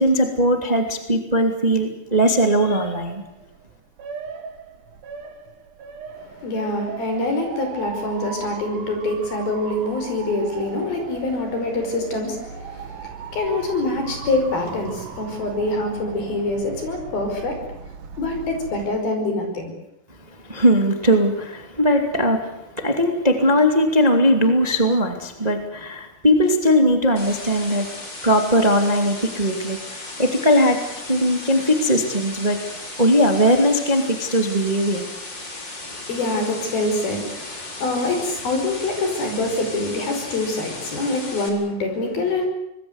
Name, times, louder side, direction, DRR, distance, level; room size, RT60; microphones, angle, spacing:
voice 1, 0.0-3.2 20.4-27.9 28.2-30.8 31.1-32.6 33.0-35.0, equal, 15° right, 5 dB, 1.9 m, -19 dB
Motor vehicle (road) / Siren, 2.1-18.9, right 5 dB, 60° right, 3.2 m, -38 dB
voice 2, 6.2-17.7 18.2-19.7 35.8-42.5, left 2 dB, 70° left, 5 dB, 7.1 m, -25 dB
sound 1, 27.2-41.5, left 2 dB, 30° left, 4.6 m, -36 dB
25.5 x 21.0 x 8.2 m, 0.86 s
omnidirectional pair, 4.4 m